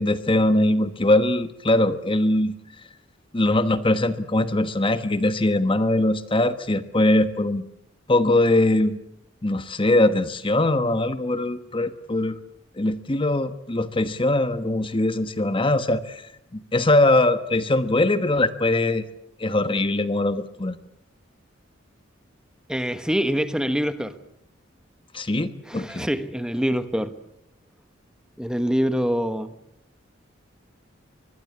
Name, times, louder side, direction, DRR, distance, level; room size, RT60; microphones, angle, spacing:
voice 1, 0.0-2.5 3.3-7.6 8.1-9.0 9.4-12.4 12.8-19.0 19.4-20.8 25.1-26.1, left 2 dB, 25° left, 12 dB, 1.2 m, -21 dB
voice 2, 22.7-24.2 25.7-27.1 28.4-29.5, equal, 5° right, 11 dB, 1.2 m, -25 dB
25.0 x 21.5 x 8.5 m, 0.77 s
head